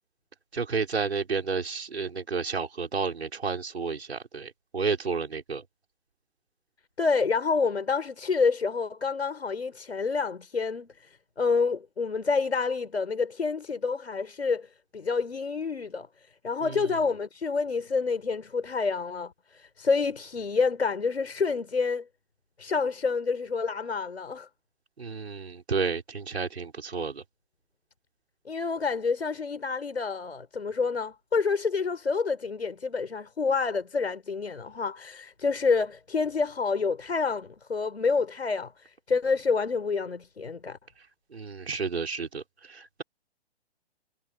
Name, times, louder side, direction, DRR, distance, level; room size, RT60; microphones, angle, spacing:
voice 1, 0.5-5.6 16.6-17.0 25.0-27.2 41.3-43.0, right 4 dB, 75° right, 6.1 m, -31 dB
voice 2, 7.0-16.1 16.4-22.1 22.6-24.5 28.5-40.8, left 4 dB, 80° left, 5.5 m, -28 dB
figure-of-eight pair, 130°, 32 cm